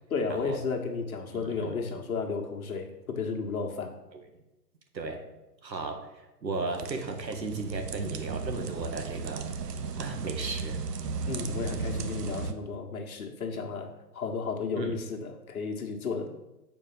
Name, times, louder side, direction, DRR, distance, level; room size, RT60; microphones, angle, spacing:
voice 1, 0.1-3.9 11.3-16.3, left 4 dB, 55° left, 2 dB, 1.5 m, -33 dB
voice 2, 1.4-2.0 4.1-4.2 4.9-5.3 5.6-9.5 10.0-10.8 14.8-15.0, right 3 dB, 85° right, 4 dB, 1.7 m, -35 dB
sound 1, 6.6-12.5, right 5 dB, 70° right, 0.8 m, -35 dB
7.3 x 4.8 x 5.8 m, 0.99 s
hypercardioid pair, 140°, 50 cm